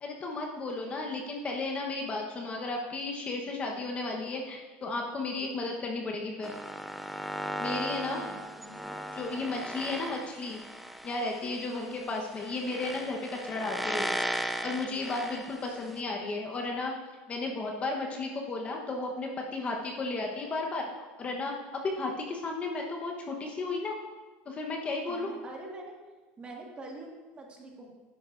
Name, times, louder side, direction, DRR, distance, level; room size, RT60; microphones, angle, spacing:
voice 1, 0.0-6.5 7.6-8.2 9.1-10.6 11.0-14.3 14.6-16.9 17.3-24.0 24.5-25.3, left 3 dB, 25° left, 1 dB, 1.1 m, -34 dB
sound 1, 6.4-16.0, equal, ahead, 0.4 m, -37 dB
voice 2, 8.1-9.6 11.6-12.0 25.1-25.9 26.4-27.9, right 2 dB, 25° right, 0 dB, 1.7 m, -45 dB
12.0 x 10.5 x 2.6 m, 1.3 s
cardioid pair, 140°, 5 cm